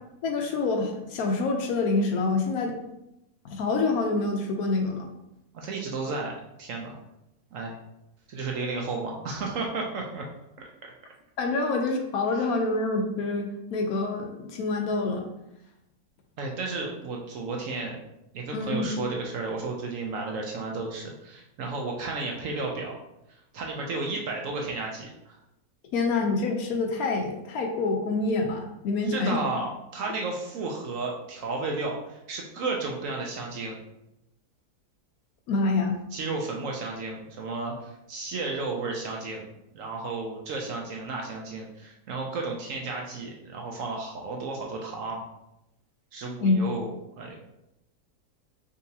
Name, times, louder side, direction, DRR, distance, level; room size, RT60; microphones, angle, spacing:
voice 1, 0.2-2.8 3.4-5.1 11.4-15.2 18.5-18.9 25.9-29.4 35.5-36.0 46.4-46.6, left 3 dB, 70° left, 3 dB, 1.0 m, -26 dB
voice 2, 5.5-6.3 6.6-7.0 7.5-7.7 8.3-10.3 10.6-10.7 12.3-12.5 16.4-18.0 18.3-23.0 23.3-25.4 29.0-33.8 36.1-39.5 39.7-45.2 46.1-47.4, right 3 dB, 65° right, 0 dB, 0.8 m, -33 dB
5.0 x 2.8 x 2.7 m, 0.86 s
omnidirectional pair, 1.7 m